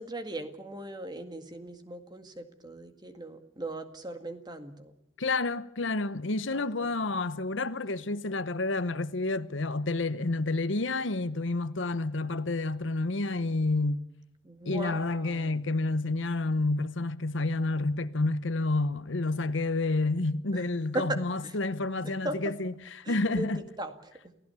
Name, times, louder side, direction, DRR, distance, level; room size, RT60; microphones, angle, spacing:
voice 1, 0.0-4.9 6.5-7.1 14.4-15.6 20.5-20.7 20.9-21.6 22.0-22.5 23.0-24.3, right 1 dB, 20° right, 1.9 m, -39 dB
voice 2, 5.2-14.1 14.7-22.7 23.1-23.6, left 2 dB, 70° left, 1.0 m, -29 dB
29.0 x 16.0 x 7.0 m
head